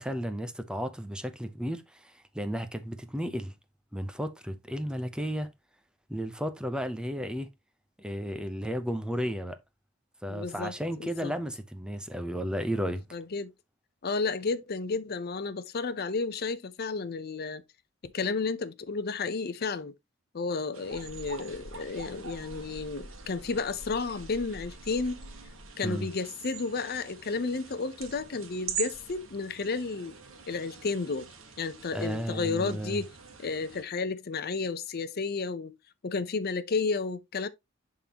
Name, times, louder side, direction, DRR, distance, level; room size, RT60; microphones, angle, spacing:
voice 1, 0.0-3.5 3.9-5.5 6.1-7.5 8.0-9.6 10.2-13.0 25.8-26.1 31.9-33.0, equal, 5° right, 0.7 m, -33 dB
voice 2, 10.3-10.7 11.0-11.3 13.1-13.5 14.0-17.6 18.0-19.9 20.3-25.3 25.8-30.1 30.5-31.3 31.6-35.8 36.0-37.5, left 4 dB, 50° left, 0.6 m, -32 dB
sound 1, 20.7-33.8, right 6 dB, 85° right, 1.5 m, -43 dB
11.0 x 3.8 x 2.9 m
head